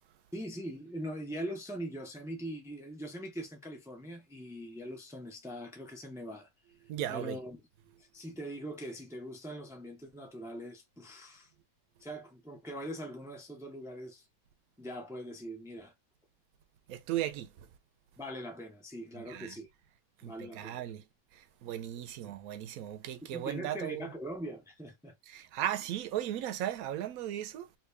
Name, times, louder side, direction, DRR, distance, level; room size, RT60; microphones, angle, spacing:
voice 1, 0.3-6.5 7.1-7.6 8.0-11.5 12.0-14.2 14.8-15.9 18.2-19.7 20.2-20.8 23.2-25.1, equal, 5° right, 0.4 m, -42 dB
voice 2, 6.9-7.4 16.9-17.7 19.1-19.6 20.2-21.0 21.3-24.1 25.3-27.7, right 12 dB, 75° right, 1.0 m, -37 dB
2.9 x 2.7 x 3.2 m
omnidirectional pair, 1.6 m